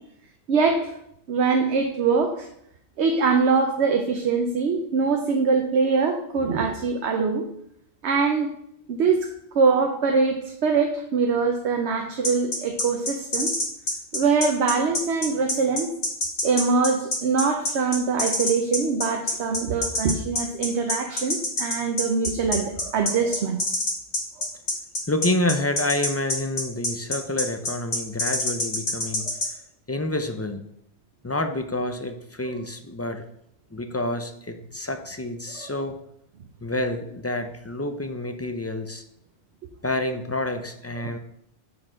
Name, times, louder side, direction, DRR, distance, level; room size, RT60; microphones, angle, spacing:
voice 1, 0.5-0.9 1.3-2.5 3.0-7.4 8.0-8.5 8.9-13.5 14.1-15.9 16.4-23.6 35.5-35.7 41.0-41.1, right 4 dB, 85° right, 4 dB, 1.0 m, -23 dB
sound 1, 12.2-29.5, left 2 dB, 55° left, 1.9 m, -26 dB
voice 2, 25.1-29.3 29.9-30.6 31.2-33.2 33.7-35.9 36.6-39.0 39.8-41.2, left 1 dB, 25° left, 7 dB, 0.3 m, -28 dB
6.0 x 4.6 x 6.2 m, 0.75 s
omnidirectional pair, 1.1 m